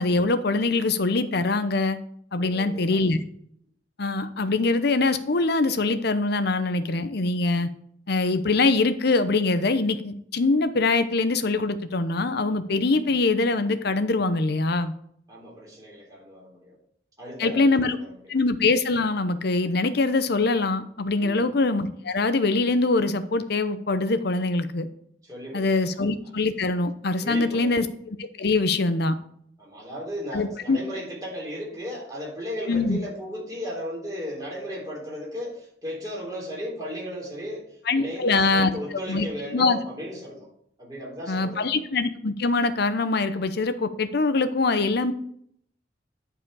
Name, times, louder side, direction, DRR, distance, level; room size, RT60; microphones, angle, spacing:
voice 1, 0.0-2.0 2.3-3.2 4.0-7.7 8.1-14.9 17.4-18.0 18.3-24.9 25.5-29.2 30.3-30.8 32.7-33.0 37.9-38.7 39.1-39.2 39.5-39.8 41.3-45.1, left 3 dB, 60° left, 11 dB, 0.8 m, -23 dB
voice 2, 2.4-3.1 15.3-16.8 17.2-18.1 21.2-21.5 25.2-26.0 27.2-27.9 29.6-37.7 38.0-40.5 40.8-41.7, equal, 20° right, -4 dB, 3.7 m, -35 dB
11.0 x 4.9 x 4.8 m, 0.66 s
head